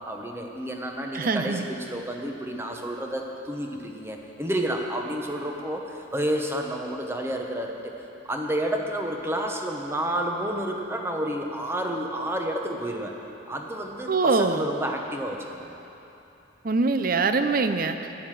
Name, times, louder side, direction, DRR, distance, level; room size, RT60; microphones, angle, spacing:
voice 1, 0.0-7.9 8.2-13.2 13.5-15.8, right 1 dB, 10° right, 2 dB, 0.9 m, -30 dB
voice 2, 1.1-1.7 14.1-14.6 16.6-18.0, right 4 dB, 45° right, 8 dB, 0.5 m, -23 dB
11.5 x 10.5 x 7.5 m, 3.0 s
head